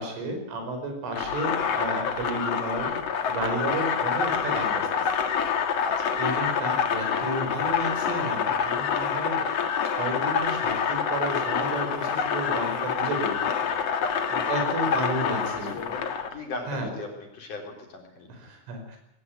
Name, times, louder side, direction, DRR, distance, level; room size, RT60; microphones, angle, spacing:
voice 1, 0.0-3.0 3.3-5.1 6.2-9.5 9.8-13.7 14.3-15.8 16.7-16.9 18.3-19.0, right 1 dB, 90° right, 4 dB, 7.7 m, -32 dB
sound 1, 1.1-16.3, left 7 dB, 70° left, 1.5 m, -27 dB
voice 2, 5.8-6.1 14.0-14.2 14.8-14.9 15.4-16.0 16.3-17.1 17.3-18.3, left 3 dB, 45° left, 2 dB, 5.1 m, -38 dB
20.5 x 17.5 x 9.2 m, 0.83 s
omnidirectional pair, 5.5 m